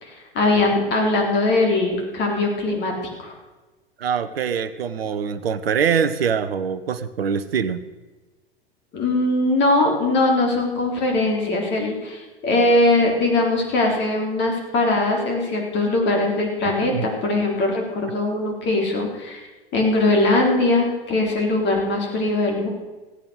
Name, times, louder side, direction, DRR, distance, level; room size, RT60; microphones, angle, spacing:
voice 1, 0.0-2.9 3.2-3.3 8.9-19.4 19.7-22.7, left 2 dB, 35° left, 1 dB, 3.8 m, -21 dB
voice 2, 4.0-7.8 16.9-17.1, right 7 dB, 75° right, 13 dB, 0.8 m, -23 dB
16.5 x 8.7 x 6.5 m, 1.2 s
figure-of-eight pair, 95°, 30 cm